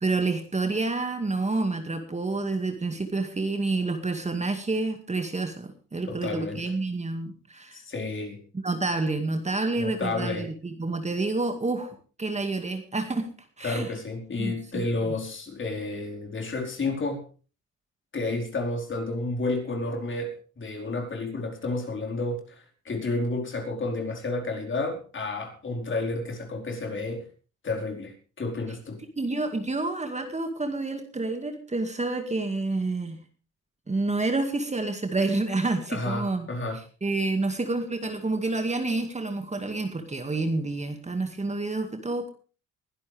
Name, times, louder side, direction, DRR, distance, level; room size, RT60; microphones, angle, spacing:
voice 1, 0.0-7.8 8.6-13.3 13.6-13.9 14.4-15.1 29.2-33.2 33.9-36.5 37.0-42.3, right 3 dB, 20° right, 5 dB, 2.1 m, -29 dB
voice 2, 6.1-6.6 7.7-8.4 9.7-10.5 13.6-17.2 18.1-27.3 27.6-29.0 35.9-36.8, left 2 dB, 40° left, 2 dB, 4.6 m, -31 dB
21.5 x 11.5 x 3.5 m, 0.36 s
cardioid pair, 90°, 30 cm